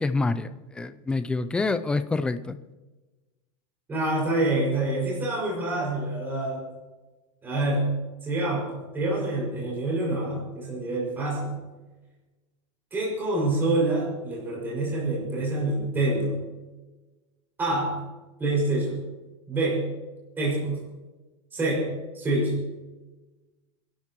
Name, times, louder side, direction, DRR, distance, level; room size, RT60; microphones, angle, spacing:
voice 1, 0.0-2.6, left 3 dB, 5° left, 12 dB, 0.4 m, -27 dB
voice 2, 3.9-6.6 7.4-7.9 8.2-11.6 12.9-16.4 17.6-17.9 18.4-19.0 19.5-19.9 20.4-20.8 21.5-21.9 22.1-22.6, right 2 dB, 15° right, -5 dB, 6.0 m, -26 dB
27.0 x 12.0 x 3.1 m, 1.2 s
supercardioid pair, 170°, 16 cm